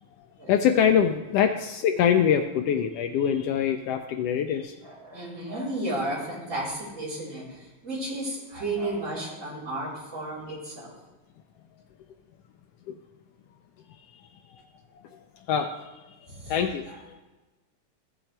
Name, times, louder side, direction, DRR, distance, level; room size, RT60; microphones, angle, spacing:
voice 1, 0.2-4.8 12.9-13.0 14.1-14.2 15.1-17.1, left 8 dB, 85° left, 5 dB, 1.3 m, -25 dB
voice 2, 4.8-10.9 16.3-16.5, right 1 dB, 25° right, -8 dB, 4.2 m, -33 dB
14.5 x 7.3 x 3.3 m, 1.2 s
omnidirectional pair, 3.3 m